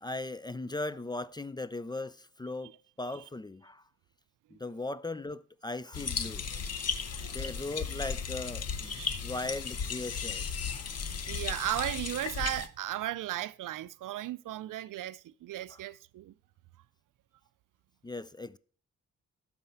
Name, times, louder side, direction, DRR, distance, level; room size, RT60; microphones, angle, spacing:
voice 1, 0.0-3.8 4.5-6.5 7.3-10.9 15.7-15.8 18.0-18.6, left 2 dB, 15° left, 0.3 m, -38 dB
sound 1, 5.9-12.7, left 6 dB, 55° left, 0.9 m, -35 dB
voice 2, 8.8-9.3 11.3-16.3, right 14 dB, 85° right, 0.5 m, -36 dB
12.0 x 4.3 x 5.7 m
cardioid pair, 75°, 31 cm